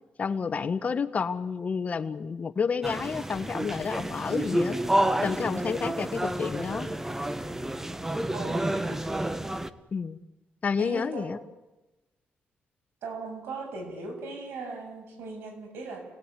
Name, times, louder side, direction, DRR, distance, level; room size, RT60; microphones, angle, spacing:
voice 1, 0.2-4.8 5.2-6.9 9.9-10.2 10.6-11.4, left 5 dB, 40° left, 11 dB, 1.3 m, -30 dB
sound 1, 2.8-9.7, right 1 dB, 10° right, 1.2 m, -29 dB
voice 2, 8.3-9.0 10.8-11.3 13.0-16.0, right 3 dB, 90° right, 4 dB, 7.7 m, -38 dB
30.0 x 19.0 x 9.9 m, 1.1 s
cardioid pair, 115°, 4 cm